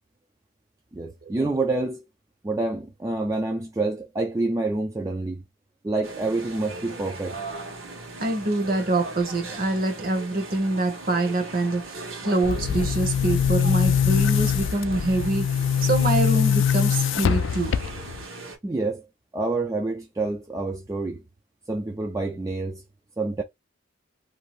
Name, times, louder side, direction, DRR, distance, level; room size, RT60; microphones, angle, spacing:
voice 1, 0.9-2.0 2.4-5.4 5.8-7.4 18.6-19.0 19.3-21.2 21.7-22.8 23.2-23.4, right 2 dB, 15° right, 0.3 m, -27 dB
sound 1, 6.0-18.6, right 3 dB, 75° right, 1.2 m, -39 dB
voice 2, 8.2-15.5 15.8-17.8, right 2 dB, 45° right, 0.9 m, -25 dB
Boom, 12.4-18.2, left 8 dB, 65° left, 0.3 m, -23 dB
2.7 x 2.3 x 3.0 m
head